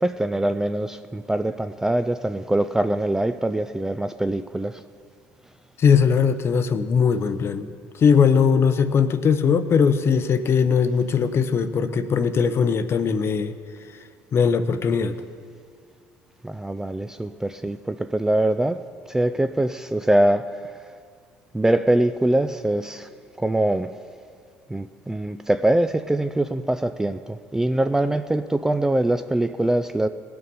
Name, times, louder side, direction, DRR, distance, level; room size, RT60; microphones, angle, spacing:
voice 1, 0.0-4.8 16.4-18.8 19.1-20.8 21.5-23.1 23.4-23.9 24.7-30.1, right 1 dB, 10° right, 10 dB, 0.3 m, -23 dB
voice 2, 5.8-7.7 8.0-13.6 14.3-15.2, left 6 dB, 40° left, 11 dB, 0.7 m, -20 dB
18.0 x 6.8 x 5.3 m, 2.1 s
cardioid pair, 105°, 6 cm